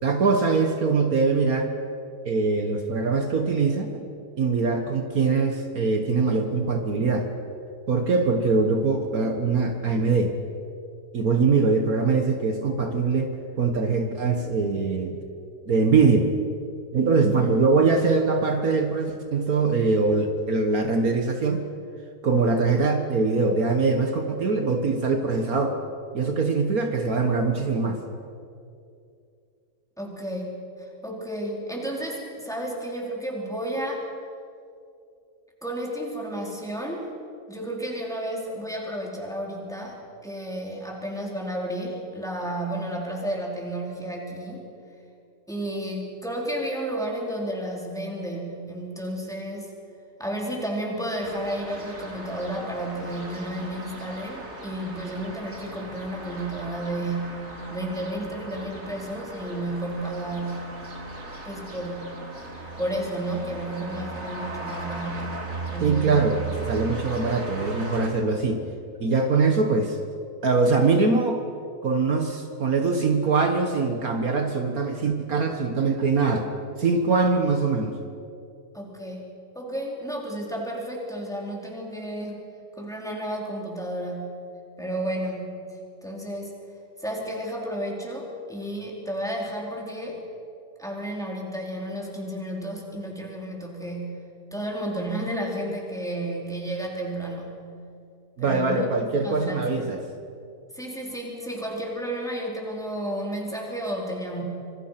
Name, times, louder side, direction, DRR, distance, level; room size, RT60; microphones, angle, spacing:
voice 1, 0.0-1.7 2.3-3.9 4.4-7.3 7.9-10.3 11.1-15.2 15.7-16.3 16.9-21.6 22.2-25.8 26.1-28.0 65.8-68.6 69.0-70.0 70.4-71.4 71.8-76.5 76.8-77.9 98.4-100.0, right 4 dB, 60° right, 4 dB, 1.9 m, -22 dB
voice 2, 30.0-34.1 35.6-37.1 37.5-44.7 45.5-49.7 50.2-60.7 61.4-62.3 62.8-66.3 69.7-69.8 78.7-82.4 82.8-84.4 84.8-85.6 86.0-86.5 87.0-90.2 90.8-94.2 94.5-97.6 98.4-99.9 100.7-104.4, right 1 dB, ahead, -2 dB, 4.4 m, -32 dB
sound 1, 51.2-68.1, right 3 dB, 45° right, 3.0 m, -37 dB
26.0 x 24.0 x 5.9 m, 2.5 s
omnidirectional pair, 1.7 m